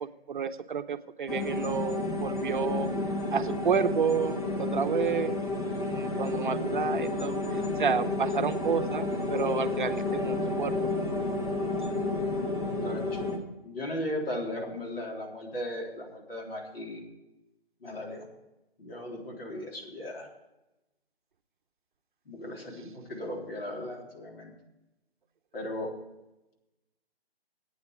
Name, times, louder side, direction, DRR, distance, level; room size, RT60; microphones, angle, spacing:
voice 1, 0.0-2.9 3.3-5.4 5.8-10.7, right 6 dB, 50° right, 9 dB, 0.7 m, -30 dB
sound 1, 1.3-13.4, left 2 dB, 35° left, 2.1 m, -31 dB
voice 2, 12.7-13.3 13.6-17.0 17.8-18.2 18.8-20.3 22.3-24.5 25.5-25.9, left 1 dB, 65° left, -1 dB, 3.8 m, -37 dB
8.8 x 8.4 x 8.2 m, 0.95 s
hypercardioid pair, 160°, 31 cm